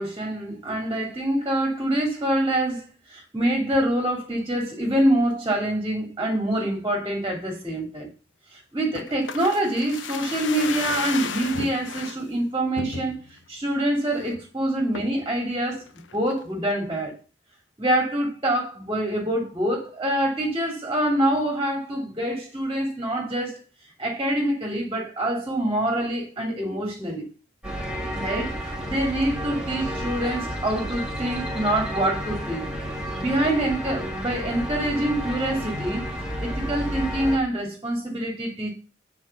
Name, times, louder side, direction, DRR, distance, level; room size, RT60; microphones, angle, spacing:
voice 1, 0.0-8.1 8.5-13.2 13.5-15.8 16.1-17.2 17.8-23.6 24.0-27.3 28.1-32.7 33.1-36.0 36.4-38.7, right 1 dB, 20° right, 2.8 m, -25 dB
sound 1, 8.9-12.2 12.8-13.4 13.8-13.9 14.1-14.5 14.9-15.3 15.7-16.4 16.7-16.8, left 5 dB, 80° left, 0.9 m, -34 dB
sound 2, 27.6-37.4, equal, 5° right, 2.7 m, -31 dB
9.4 x 5.0 x 5.9 m
head